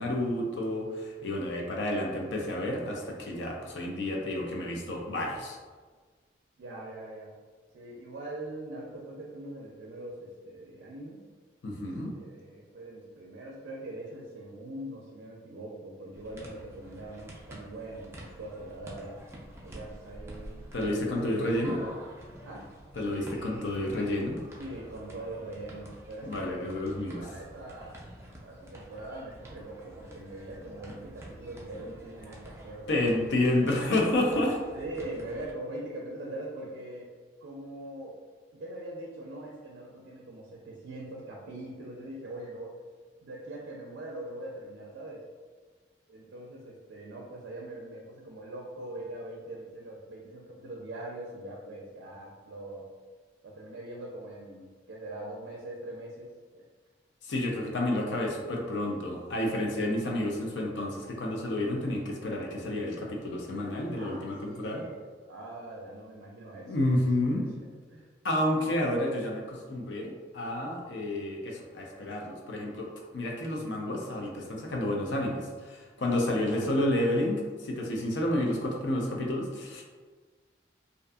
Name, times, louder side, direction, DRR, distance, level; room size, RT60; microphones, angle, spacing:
voice 1, 0.0-5.6 11.6-12.1 20.7-21.7 22.9-24.4 26.2-27.3 32.9-34.6 57.2-64.8 66.7-67.5 68.2-72.9 73.1-79.8, left 1 dB, 85° left, 0 dB, 0.5 m, -30 dB
voice 2, 6.6-7.3 7.7-11.2 11.8-19.2 19.6-20.7 21.2-22.0 22.4-22.7 24.6-26.7 27.2-28.0 28.4-33.3 34.7-37.1 37.4-38.2 38.5-42.7 43.2-45.2 46.1-52.9 53.4-56.6 64.0-65.0 65.3-68.0 76.4-76.6, right 1 dB, 85° right, -2 dB, 0.4 m, -42 dB
sound 1, 16.1-35.5, right 1 dB, 15° right, 0.3 m, -48 dB
2.5 x 2.5 x 2.3 m, 1.4 s
head